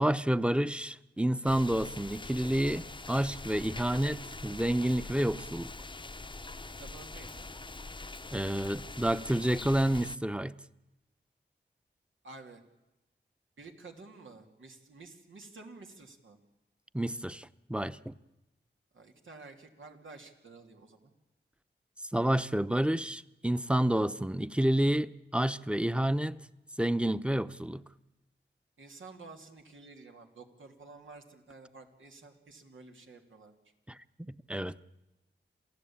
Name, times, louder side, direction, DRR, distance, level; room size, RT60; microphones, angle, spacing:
voice 1, 0.0-5.7 8.3-10.6 16.9-18.1 22.1-26.4 26.8-27.8 33.9-34.8, right 1 dB, 5° right, 0.9 m, -29 dB
sound 1, 1.4-10.2, left 3 dB, 25° left, 0.7 m, -43 dB
voice 2, 6.8-7.5 12.2-12.6 13.6-16.4 18.9-21.1 28.8-33.5, right 3 dB, 90° right, 2.9 m, -51 dB
27.5 x 16.5 x 8.8 m
cardioid pair, 50°, 20 cm